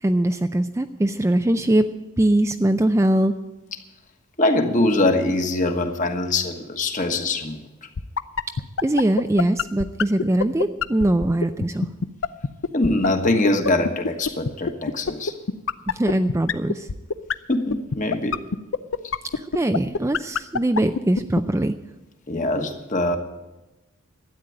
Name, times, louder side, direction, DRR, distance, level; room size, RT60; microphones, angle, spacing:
voice 1, 0.0-1.9 2.2-3.3 8.8-11.9 15.9-16.9 19.4-21.7, right 1 dB, 15° right, 8 dB, 0.4 m, -21 dB
voice 2, 4.4-7.6 12.7-15.3 17.5-18.4 22.3-23.2, left 2 dB, 35° left, 5 dB, 1.4 m, -22 dB
sound 1, 8.0-21.4, left 5 dB, 60° left, 0.5 m, -23 dB
13.0 x 9.2 x 8.6 m, 1.0 s
head